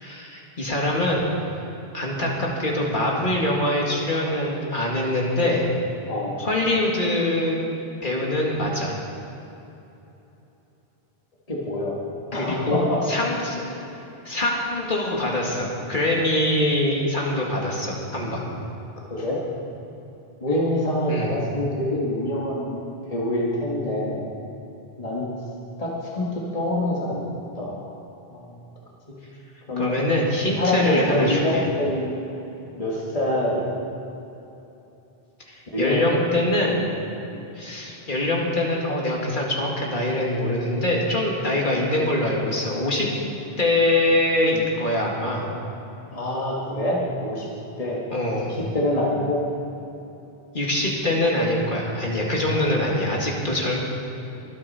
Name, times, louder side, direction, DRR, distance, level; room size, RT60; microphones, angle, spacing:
voice 1, 0.0-1.3 1.9-5.7 6.4-7.6 8.0-8.9 12.3-13.8 14.2-18.4 21.1-21.4 29.8-31.6 35.5-36.8 37.6-43.1 43.6-45.5 48.1-48.5 50.5-53.8, left 1 dB, 55° left, -2 dB, 2.2 m, -24 dB
voice 2, 11.5-12.0 12.3-13.0 19.1-19.4 20.4-22.8 23.1-24.3 25.0-25.3 25.8-27.3 27.6-27.9 28.3-28.6 29.7-29.9 30.6-32.2 32.8-33.7 35.7-36.2 37.2-37.4 46.1-47.5 47.8-48.0 48.3-49.4, left 1 dB, 35° left, -4 dB, 1.8 m, -25 dB
23.5 x 9.6 x 4.2 m, 3.0 s
omnidirectional pair, 1.0 m